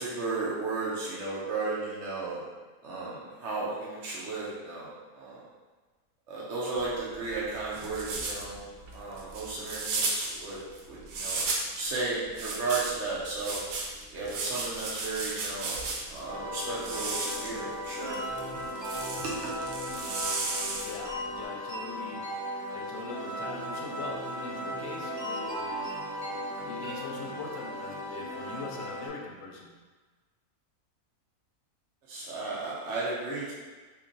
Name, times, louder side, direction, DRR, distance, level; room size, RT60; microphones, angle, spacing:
voice 1, 0.0-2.4 2.8-5.4 6.3-8.6 8.9-10.6 10.9-11.4 11.8-13.6 14.1-15.8 16.1-18.2 19.1-19.3 32.1-33.5, right 3 dB, 60° right, -7 dB, 0.9 m, -34 dB
sound 1, 6.7-11.8 12.3-16.2 16.7-21.1, right 3 dB, 80° right, 1.1 m, -34 dB
sound 2, 16.3-29.1, equal, 35° right, 1.1 m, -36 dB
voice 2, 20.8-22.3 22.7-26.0 26.7-29.8, left 3 dB, 70° left, 0 dB, 0.9 m, -42 dB
3.0 x 2.5 x 3.8 m, 1.3 s
omnidirectional pair, 1.5 m